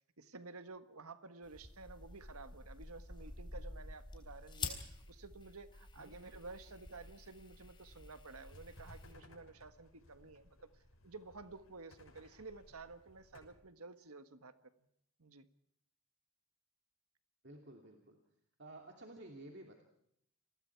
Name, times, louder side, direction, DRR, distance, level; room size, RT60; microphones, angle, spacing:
voice 1, 0.2-10.6 11.0-14.5 15.2-15.5, right 3 dB, 85° right, 10 dB, 1.5 m, -52 dB
sound 1, 1.4-9.1, left 3 dB, 20° left, 3.3 m, -49 dB
sound 2, 8.5-13.5, left 1 dB, 75° left, 6.3 m, -61 dB
voice 2, 17.4-18.2 18.6-19.8, right 1 dB, 50° right, 2 dB, 2.7 m, -53 dB
30.0 x 21.0 x 4.7 m, 0.74 s
head